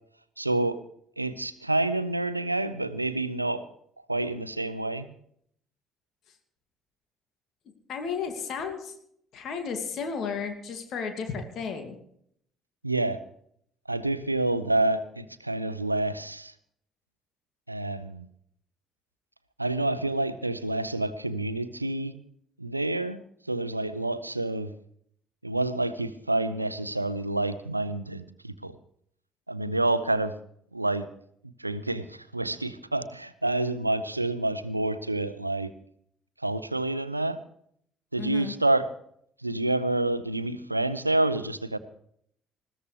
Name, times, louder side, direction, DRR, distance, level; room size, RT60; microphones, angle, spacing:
voice 1, 0.4-0.8 1.2-3.6 4.1-5.1 12.8-13.2 13.9-16.5 17.7-18.2 19.6-22.1 22.6-23.2 23.5-24.7 25.4-28.8 29.5-30.3 30.7-31.1 31.6-35.7 36.4-37.4 38.1-38.9 39.4-41.8, right 2 dB, 90° right, 14 dB, 0.6 m, -28 dB
voice 2, 7.9-8.9 9.3-12.0 38.2-38.5, left 6 dB, 50° left, 5 dB, 2.4 m, -33 dB
20.0 x 17.0 x 3.4 m, 0.67 s
figure-of-eight pair, 50°, 0 cm